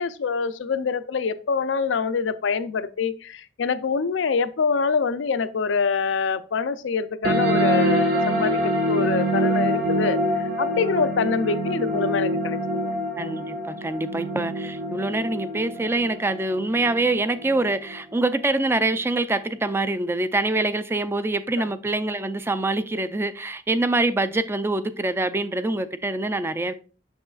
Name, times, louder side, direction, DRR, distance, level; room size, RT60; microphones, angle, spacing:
voice 1, 0.0-12.9 21.6-21.7, left 5 dB, 80° left, 0.5 m, -25 dB
sound 1, 7.2-18.2, equal, 55° right, 1.4 m, -25 dB
voice 2, 13.2-26.7, right 2 dB, 15° right, 0.3 m, -25 dB
6.4 x 6.2 x 2.4 m
head